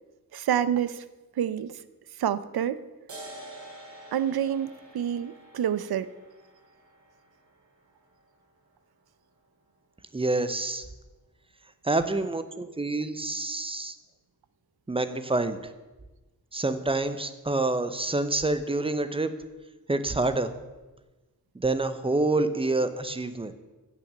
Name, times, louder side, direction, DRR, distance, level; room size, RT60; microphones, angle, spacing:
voice 1, 0.3-1.0 1.4-1.8 2.2-2.8 4.1-6.1, right 9 dB, 90° right, 16 dB, 0.7 m, -28 dB
sound 1, 3.1-10.1, right 1 dB, 50° right, 3.3 m, -49 dB
voice 2, 10.1-10.9 11.8-13.9 14.9-15.6 16.5-19.3 19.9-20.5 21.6-23.5, right 2 dB, 15° right, 11 dB, 0.7 m, -27 dB
15.5 x 6.2 x 7.3 m, 1.2 s
wide cardioid pair, 165°, 36 cm